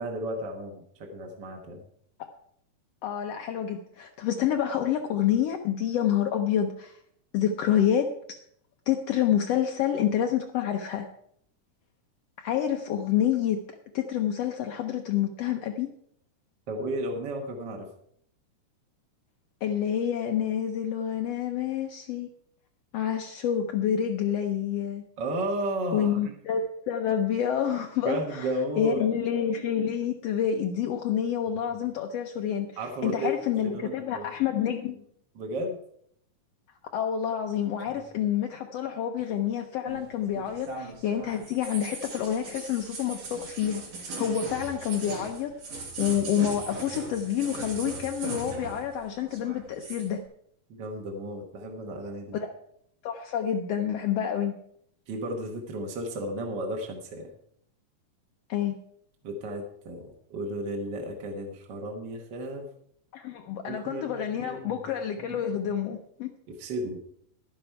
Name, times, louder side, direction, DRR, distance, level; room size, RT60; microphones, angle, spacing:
voice 1, 0.0-1.8 16.7-17.9 25.2-26.3 28.0-29.1 32.8-33.3 33.6-34.3 35.3-35.8 37.9-38.0 50.7-52.4 55.1-57.3 59.2-62.7 63.7-64.8 65.2-65.4 66.5-67.0, right 1 dB, 55° right, 1 dB, 1.3 m, -34 dB
voice 2, 3.0-7.0 7.3-8.4 8.9-11.1 12.4-13.6 13.9-15.9 19.6-22.3 22.9-25.0 25.9-32.7 33.0-35.0 36.9-43.8 44.2-45.5 46.0-50.2 52.3-52.5 53.0-54.5 58.5-58.7 63.1-66.3, left 9 dB, 85° left, 4 dB, 1.4 m, -28 dB
sound 1, 39.9-49.0 49.2-50.1, right 3 dB, 85° right, 4.7 m, -39 dB
11.0 x 10.5 x 4.6 m, 0.68 s
omnidirectional pair, 3.7 m